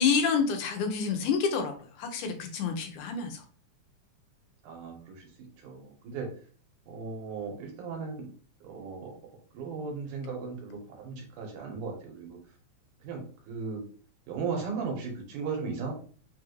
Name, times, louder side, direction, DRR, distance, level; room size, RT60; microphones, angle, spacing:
voice 1, 0.0-3.4, left 5 dB, 85° left, 4 dB, 2.2 m, -28 dB
voice 2, 4.6-5.3 5.6-6.3 6.9-8.3 8.6-9.1 9.5-12.4 13.0-13.8 14.3-15.9, right 5 dB, 85° right, 1 dB, 2.6 m, -36 dB
5.6 x 2.5 x 3.1 m, 0.43 s
omnidirectional pair, 3.5 m